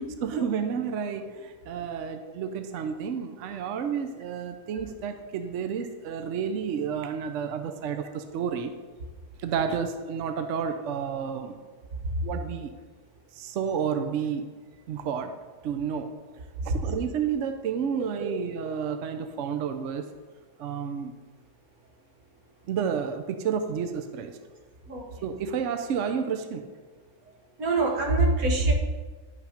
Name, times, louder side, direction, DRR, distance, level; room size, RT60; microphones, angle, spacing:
voice 1, 0.2-8.7 9.4-11.6 12.2-12.7 13.3-14.5 14.9-15.3 15.6-16.1 16.6-20.1 20.6-21.1 22.7-24.4 25.2-26.6, right 7 dB, 65° right, 7 dB, 0.9 m, -30 dB
voice 2, 27.6-28.7, right 2 dB, 85° right, 1 dB, 1.9 m, -24 dB
10.5 x 5.8 x 5.1 m, 1.4 s
omnidirectional pair, 1.5 m